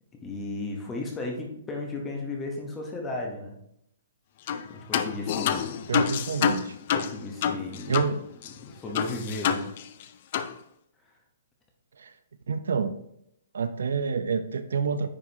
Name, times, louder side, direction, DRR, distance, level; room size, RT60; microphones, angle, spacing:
voice 1, 0.2-3.5 4.7-5.8 6.9-8.1 8.6-9.6, left 2 dB, 10° left, 1 dB, 0.9 m, -35 dB
sound 1, 4.5-4.6 4.9-8.1 8.4-8.5 8.9-10.0 10.3-10.5, left 8 dB, 30° left, 0.4 m, -27 dB
voice 2, 5.9-6.8 7.9-8.2 12.0-12.1 12.5-12.9 13.5-15.1, right 5 dB, 90° right, 11 dB, 0.6 m, -28 dB
9.6 x 4.8 x 2.8 m, 0.76 s
hypercardioid pair, 180°, 0 cm